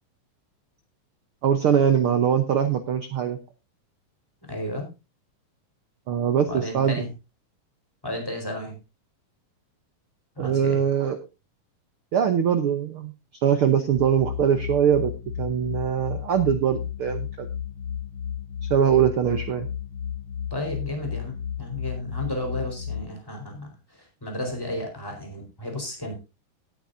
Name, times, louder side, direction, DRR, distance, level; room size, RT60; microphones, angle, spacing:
voice 1, 1.4-3.4 6.1-7.0 10.4-11.2 12.1-13.1 13.4-15.1 15.4-17.5 18.7-19.7, right 8 dB, 85° right, 8 dB, 1.2 m, -22 dB
voice 2, 4.4-4.9 6.4-7.1 8.0-8.7 10.4-10.8 20.5-26.2, left 1 dB, 5° left, 1 dB, 4.3 m, -33 dB
sound 1, 14.0-23.0, left 8 dB, 65° left, 1.4 m, -33 dB
18.0 x 9.4 x 2.7 m, 0.27 s
omnidirectional pair, 4.0 m